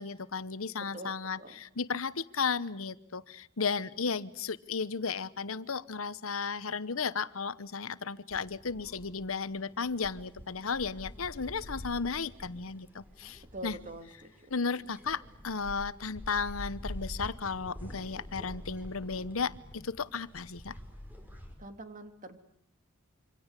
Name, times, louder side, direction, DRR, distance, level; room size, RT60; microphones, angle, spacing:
voice 1, 0.0-13.8 14.5-20.7, left 5 dB, 90° left, 16 dB, 1.0 m, -34 dB
voice 2, 0.9-1.6 13.5-14.5 21.6-22.4, right 1 dB, 40° right, 7 dB, 3.0 m, -45 dB
sound 1, 8.3-21.5, equal, 10° right, 5.4 m, -47 dB
27.0 x 26.0 x 8.3 m, 0.72 s
head